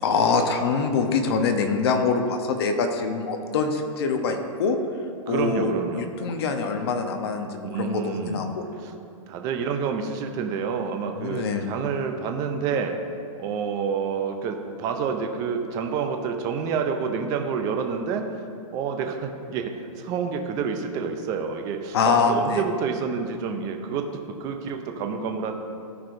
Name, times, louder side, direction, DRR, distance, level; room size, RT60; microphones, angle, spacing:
voice 1, 0.0-4.8 5.3-8.6 11.2-11.8 21.9-22.6, left 4 dB, 45° left, 5 dB, 0.8 m, -24 dB
voice 2, 5.3-6.1 7.6-8.4 8.8-8.9 9.3-13.0 13.4-18.4 18.7-24.1 24.4-25.5, right 6 dB, 20° right, 5 dB, 0.5 m, -28 dB
14.0 x 4.7 x 2.6 m, 2.4 s
hypercardioid pair, 165°, 18 cm